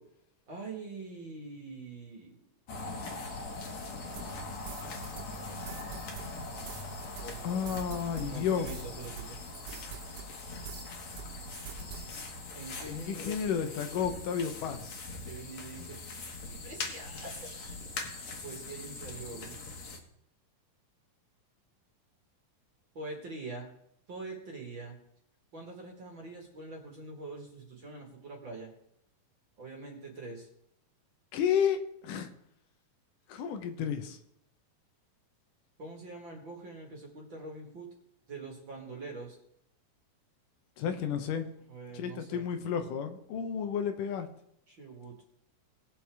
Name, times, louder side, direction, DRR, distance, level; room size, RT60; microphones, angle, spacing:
voice 1, 0.5-2.5 4.8-5.1 7.2-7.8 8.2-9.4 12.5-13.4 15.3-17.8 18.4-19.6 22.9-23.7 24.1-25.0 25.5-28.7 29.6-30.5 35.8-37.9 38.3-39.4 41.7-42.5 44.7-45.2, right 3 dB, 40° right, 0 dB, 2.1 m, -44 dB
sound 1, 2.7-20.0, left 3 dB, 60° left, 2.7 m, -42 dB
sound 2, 3.0-12.2, left 2 dB, 5° left, 3.0 m, -58 dB
sound 3, 4.2-10.9 11.2-12.2, right 8 dB, 70° right, 1.4 m, -46 dB
voice 2, 7.4-8.7 12.8-15.0 31.3-31.8 32.0-32.3 33.3-34.2 40.8-41.5 41.9-44.3, left 8 dB, 80° left, 7 dB, 2.4 m, -32 dB
20.0 x 6.9 x 3.5 m, 0.76 s
omnidirectional pair, 3.8 m